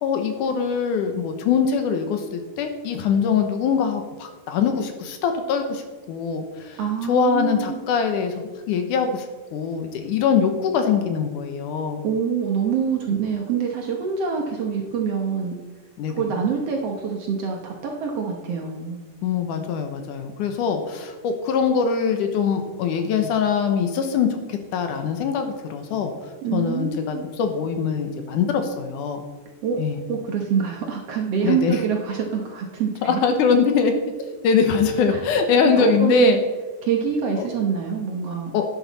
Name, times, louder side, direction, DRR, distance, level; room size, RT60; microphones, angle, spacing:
voice 1, 0.0-5.8 6.1-8.3 8.7-9.3 9.5-12.0 16.0-16.3 19.2-26.1 26.5-29.2 29.8-30.0 31.4-31.8 33.0-33.9 34.4-36.4 37.4-37.5 38.5-38.6, left 6 dB, 75° left, 6 dB, 2.5 m, -22 dB
voice 2, 6.8-7.8 12.0-15.6 16.1-19.0 26.4-27.2 29.6-29.8 30.1-33.1 35.1-35.2 35.6-36.4 36.8-38.5, right 6 dB, 65° right, 1 dB, 1.7 m, -25 dB
11.0 x 10.5 x 4.1 m, 1.2 s
omnidirectional pair, 3.8 m